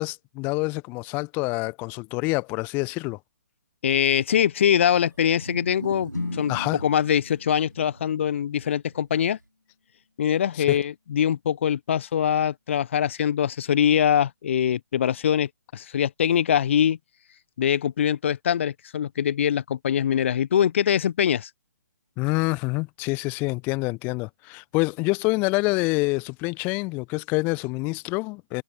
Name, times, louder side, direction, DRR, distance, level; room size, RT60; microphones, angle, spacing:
voice 1, 0.0-3.2 6.5-6.8 10.5-10.8 22.2-28.6, left 26 dB, 20° left, 1.1 m, -26 dB
voice 2, 3.8-6.5 6.8-9.4 10.2-17.0 17.6-21.5, left 9 dB, 40° left, 1.3 m, -23 dB
Wild animals, 4.4-9.4, right 1 dB, 80° right, 4.3 m, -41 dB
sound 1, 6.1-10.2, left 3 dB, 70° left, 5.9 m, -39 dB
figure-of-eight pair, 135°, 10 cm